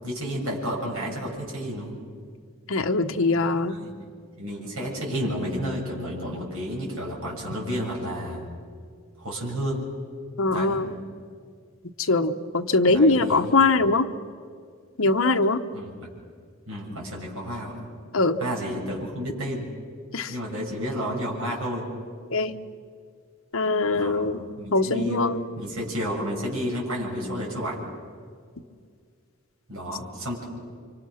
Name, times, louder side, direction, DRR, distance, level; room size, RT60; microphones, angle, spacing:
voice 1, 0.0-2.0 3.7-3.9 4.4-8.5 9.2-9.9 10.5-10.8 12.9-13.7 15.7-15.9 16.7-17.9 18.4-19.7 20.3-21.9 23.9-24.3 24.6-25.2 25.6-27.8 29.7-30.4, equal, 70° right, -3 dB, 6.9 m, -31 dB
voice 2, 2.7-3.7 10.4-10.9 12.1-14.1 15.0-15.6 18.1-18.4 20.1-20.3 22.3-22.5 23.5-24.4 24.7-25.4, left 3 dB, 70° left, 6 dB, 1.0 m, -22 dB
29.0 x 25.5 x 6.4 m, 2.1 s
head